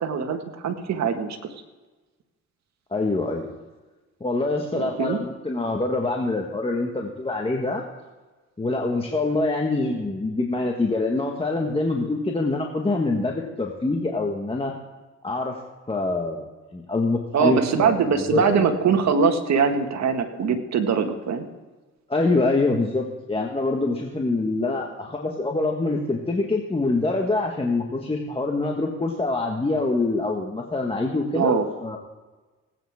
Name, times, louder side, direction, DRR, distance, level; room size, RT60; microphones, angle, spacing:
voice 1, 0.0-1.4 4.8-5.2 17.3-21.5 31.3-31.7, right 6 dB, 65° right, 5 dB, 1.7 m, -22 dB
voice 2, 2.9-3.5 4.2-7.8 8.6-14.7 15.2-15.6 15.9-18.0 18.3-18.6 22.1-32.0, left 2 dB, 20° left, 1 dB, 1.5 m, -25 dB
18.5 x 9.2 x 3.6 m, 1.2 s
cardioid pair, 90°, 30 cm